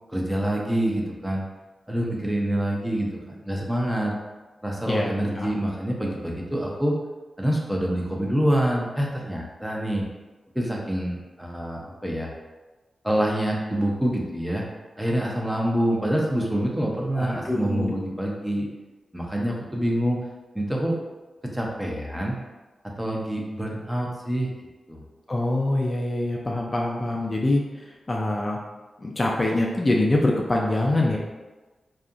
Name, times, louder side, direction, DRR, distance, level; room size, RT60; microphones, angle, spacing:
voice 1, 0.1-1.4 1.9-3.1 3.4-4.1 4.6-7.0 7.4-10.0 10.5-12.3 13.0-14.7 15.0-18.7 19.1-20.2 20.5-21.0 21.4-22.4 23.0-24.5 24.9-25.0, right 1 dB, 10° right, -1 dB, 0.6 m, -26 dB
voice 2, 17.2-17.9 25.3-28.6 29.0-31.2, left 2 dB, 30° left, -1 dB, 0.4 m, -24 dB
2.7 x 2.4 x 2.4 m, 1.2 s
cardioid pair, 50°, 0 cm